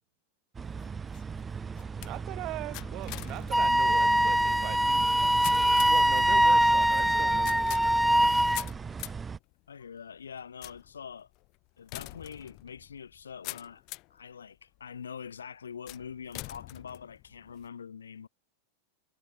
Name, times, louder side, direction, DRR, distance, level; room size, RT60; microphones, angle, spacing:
sound 1, 0.5-9.4, right 5 dB, 15° right, 1.8 m, -38 dB
sound 2, 0.6-14.2 14.8-15.2 15.9-17.7, left 25 dB, 40° left, 5.5 m, -45 dB
voice 1, 1.9-5.1 5.9-8.2, right 19 dB, 40° right, 6.1 m, -41 dB
Wind instrument woodwind instrument, 3.5-8.6, right 1 dB, ahead, 0.4 m, -23 dB
voice 2, 9.7-11.3 11.8-13.8 14.1-18.3, left 7 dB, 70° left, 6.1 m, -44 dB
figure-of-eight pair, 90°, 0 cm